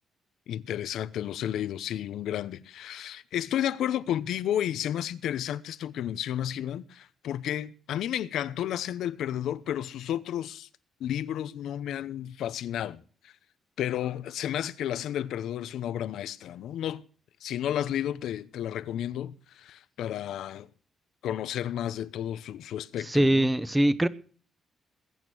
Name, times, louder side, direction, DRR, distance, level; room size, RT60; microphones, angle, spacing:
voice 1, 0.5-10.7 11.0-13.3 13.8-17.0 17.4-20.7 21.2-23.5, left 11 dB, 85° left, 0.9 m, -32 dB
voice 2, 23.1-24.1, right 1 dB, 10° right, 1.0 m, -22 dB
20.5 x 9.1 x 6.3 m
cardioid pair, 130°, 0 cm